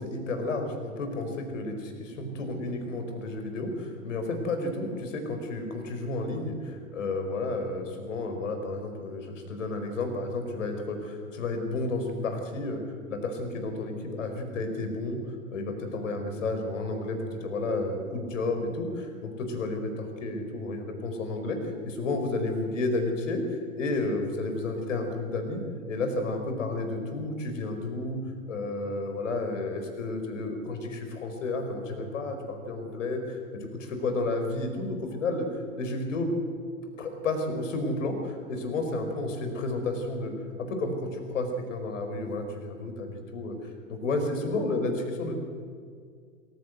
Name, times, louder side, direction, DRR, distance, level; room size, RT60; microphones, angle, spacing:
voice 1, 0.0-12.8 13.1-15.2 15.5-21.6 21.8-23.4 23.7-25.6 25.9-28.2 28.5-36.3 37.0-40.3 40.6-43.5 43.9-45.4, left 2 dB, 60° left, 6 dB, 4.7 m, -31 dB
25.5 x 15.0 x 7.9 m, 2.1 s
figure-of-eight pair, 105°, 42 cm